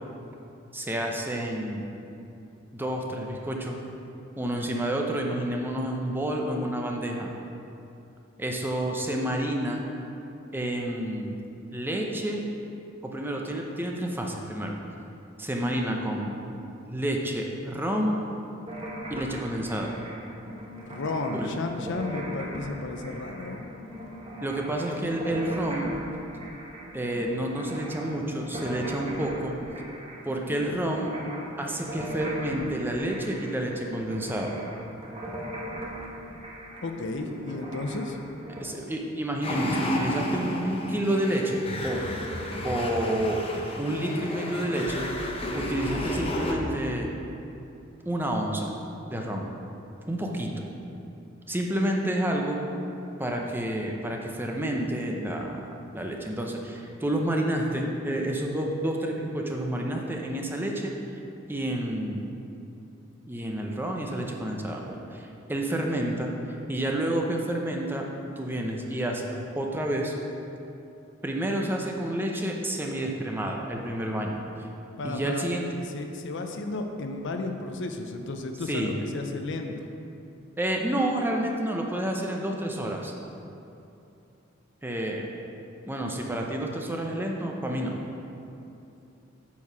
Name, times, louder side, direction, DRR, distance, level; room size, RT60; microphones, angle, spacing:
voice 1, 0.7-1.8 2.7-3.8 4.4-7.3 8.4-9.8 10.5-11.4 11.7-12.4 13.0-14.8 15.4-16.4 16.9-18.2 19.1-19.9 21.4-21.5 24.4-25.9 26.9-29.5 30.2-31.1 31.6-34.5 38.6-42.0 42.6-43.4 43.8-45.1 45.5-47.1 48.1-48.7 49.1-49.5 50.1-50.6 51.5-52.6 53.2-55.6 55.9-60.9 61.5-62.2 63.3-66.3 66.7-68.1 68.4-70.1 71.2-74.4 75.0-75.7 78.7-78.9 80.6-83.1 84.8-85.3 85.9-88.0, right 1 dB, 10° right, 0 dB, 0.7 m, -29 dB
sound 1, 18.7-38.6, equal, 30° right, 1.1 m, -39 dB
voice 2, 20.8-23.7 36.8-38.2 75.0-75.4 75.8-79.9, left 2 dB, 65° left, 5 dB, 0.6 m, -33 dB
sound 2, 39.4-46.5, left 1 dB, 30° left, 0.8 m, -31 dB
8.3 x 4.7 x 6.0 m, 2.7 s
head